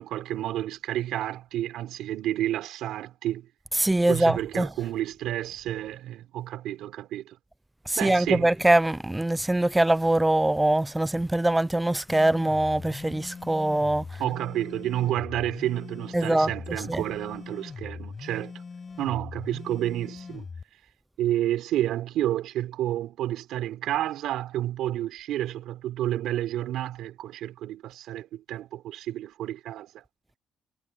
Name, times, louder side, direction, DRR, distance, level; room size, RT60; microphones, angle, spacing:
voice 1, 0.0-3.5 4.1-7.4 8.0-8.5 14.2-18.5 19.0-20.5 21.2-30.0, right 13 dB, 85° right, 5.0 m, -30 dB
voice 2, 3.7-4.7 7.9-14.2 16.1-16.5 16.9-17.0, right 1 dB, 10° right, 0.6 m, -23 dB
sound 1, 12.1-20.6, left 5 dB, 35° left, 7.8 m, -41 dB
cardioid pair, 90°, 0 cm